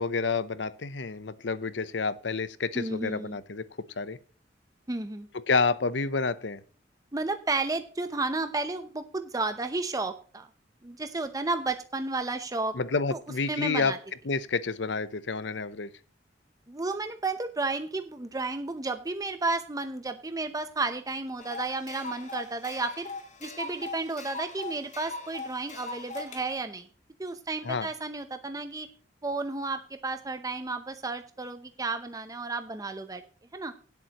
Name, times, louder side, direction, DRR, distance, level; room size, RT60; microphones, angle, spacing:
voice 1, 0.0-3.6 4.0-4.2 5.3-6.6 12.7-13.9 14.2-15.9 27.6-27.9, left 4 dB, 75° left, 16 dB, 0.8 m, -29 dB
voice 2, 2.7-3.4 4.9-5.3 7.1-10.5 10.8-12.8 13.1-13.2 13.5-14.0 16.7-23.1 23.4-26.9 27.2-28.9 29.2-33.2 33.5-33.7, right 3 dB, 20° right, 9 dB, 0.7 m, -32 dB
sound 1, 21.4-26.4, left 3 dB, 45° left, 2.1 m, -40 dB
17.0 x 8.4 x 3.0 m, 0.41 s
head